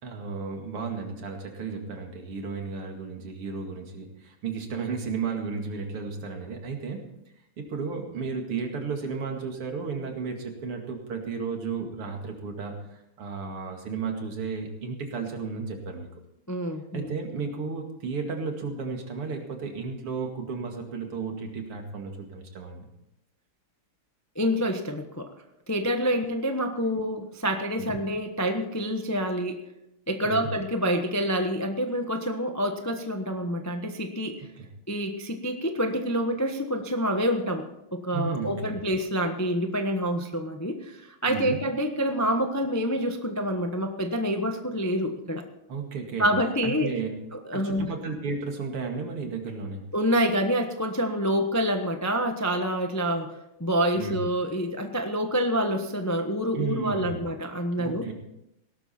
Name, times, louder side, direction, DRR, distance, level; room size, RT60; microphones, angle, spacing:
voice 1, 0.0-7.1 7.6-16.1 16.9-22.9 27.8-28.0 30.2-30.5 34.6-34.7 38.1-38.8 41.3-41.6 45.7-46.3 46.6-47.1 47.5-49.9 54.0-54.2 56.5-57.2 57.7-58.1, right 5 dB, 85° right, 3 dB, 3.1 m, -33 dB
voice 2, 16.5-17.1 24.4-25.3 25.7-29.6 30.1-34.4 34.9-45.4 46.2-46.9 47.5-47.9 49.9-53.3 53.6-58.1, equal, 20° left, 5 dB, 0.5 m, -27 dB
17.5 x 12.5 x 4.4 m, 0.85 s
omnidirectional pair, 2.4 m